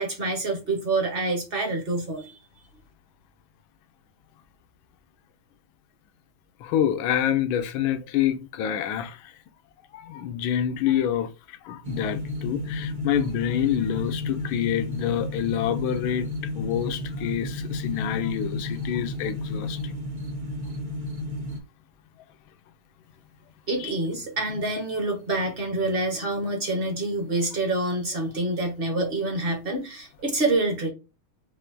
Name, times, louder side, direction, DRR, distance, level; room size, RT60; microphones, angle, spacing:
voice 1, 0.0-2.3 23.7-30.9, right 2 dB, 35° right, 1.2 m, -27 dB
voice 2, 6.6-9.3 9.9-16.3 16.5-19.9 23.8-23.9, left 10 dB, 80° left, 1.4 m, -27 dB
sound 1, 11.8-21.6, left 2 dB, 55° right, 0.5 m, -32 dB
5.6 x 2.7 x 2.6 m
omnidirectional pair, 2.2 m